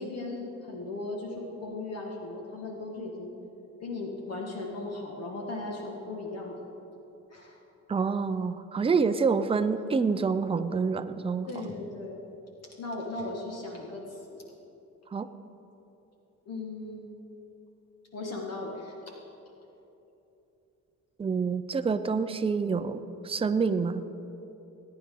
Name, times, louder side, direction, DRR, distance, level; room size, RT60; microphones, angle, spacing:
voice 1, 0.0-3.3 3.8-6.6 7.3-7.6 9.4-9.5 11.5-12.2 12.8-14.4 16.5-17.1 18.1-19.1, left 2 dB, 55° left, -1 dB, 1.8 m, -37 dB
voice 2, 7.9-11.5 15.1-15.3 21.2-24.0, right 5 dB, 20° right, 9 dB, 0.5 m, -27 dB
18.5 x 9.8 x 3.8 m, 3.0 s
cardioid pair, 90°, 30 cm